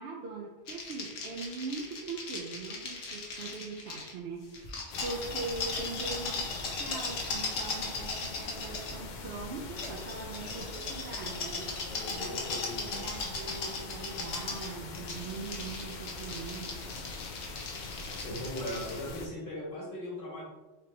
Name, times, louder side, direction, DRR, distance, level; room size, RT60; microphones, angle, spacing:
voice 1, 0.0-11.7 12.1-16.8, right 4 dB, 65° right, -1 dB, 0.7 m, -41 dB
sound 1, 0.7-4.1 4.5-9.0 9.8-19.0, left 3 dB, 90° left, 1.2 m, -38 dB
sound 2, 4.9-19.3, left 3 dB, 70° left, 0.4 m, -43 dB
voice 2, 11.9-13.1 18.1-20.4, left 1 dB, 45° left, -5 dB, 1.6 m, -39 dB
4.2 x 3.2 x 3.1 m, 1.1 s
omnidirectional pair, 1.3 m